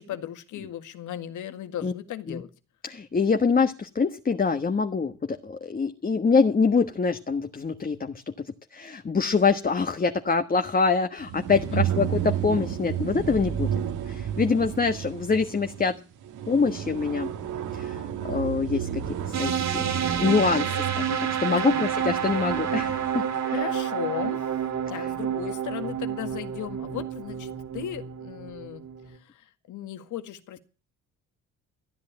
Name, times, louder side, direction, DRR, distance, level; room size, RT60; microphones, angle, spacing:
voice 1, 0.0-2.5 11.7-11.9 21.5-21.9 23.5-24.4 24.9-30.6, left 11 dB, 80° left, 10 dB, 1.9 m, -36 dB
voice 2, 2.8-13.7 14.1-15.9 16.5-17.3 17.7-19.9 20.2-20.7 20.9-23.5, left 5 dB, 30° left, 7 dB, 1.4 m, -25 dB
sound 1, 11.2-23.2, right 9 dB, 85° right, 2.2 m, -32 dB
sound 2, 19.3-29.2, right 8 dB, 60° right, 2.7 m, -29 dB
13.5 x 10.5 x 8.8 m, 0.37 s
cardioid pair, 90°, 30 cm